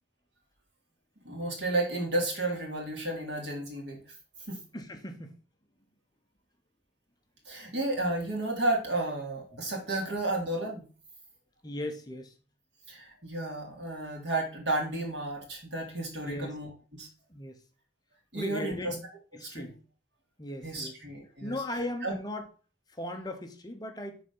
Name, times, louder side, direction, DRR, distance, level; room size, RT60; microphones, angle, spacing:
voice 1, 1.2-4.0 4.5-4.6 7.5-10.9 12.9-17.1 18.3-18.9 19.4-19.7 20.6-21.6 22.0-22.1, right 2 dB, 85° right, 2.5 m, -32 dB
voice 2, 4.7-5.4 9.5-9.6 11.6-12.3 16.2-16.6 17.3-17.6 18.3-19.0 19.3-19.8 20.4-21.0 21.4-22.5 22.9-24.2, left 1 dB, 20° left, 0.9 m, -37 dB
6.1 x 4.0 x 5.4 m
head